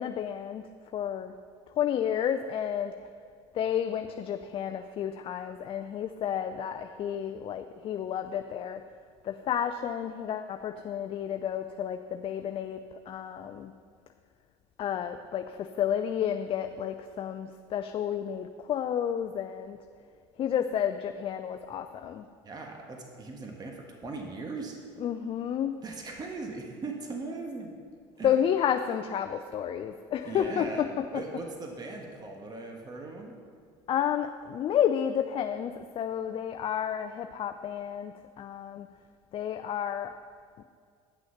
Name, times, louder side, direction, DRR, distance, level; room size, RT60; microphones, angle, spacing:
voice 1, 0.0-1.3 1.8-3.0 3.5-8.8 9.2-13.7 14.8-19.8 20.4-22.3 25.0-25.8 28.2-31.0 33.9-38.9 39.3-40.1 40.6-40.7, left 9 dB, 40° left, 7 dB, 0.4 m, -31 dB
voice 2, 22.4-24.8 25.8-27.7 28.2-28.3 30.2-33.3, right 3 dB, 30° right, 1 dB, 1.4 m, -39 dB
10.0 x 6.2 x 5.8 m, 2.1 s
supercardioid pair, 90°, 14 cm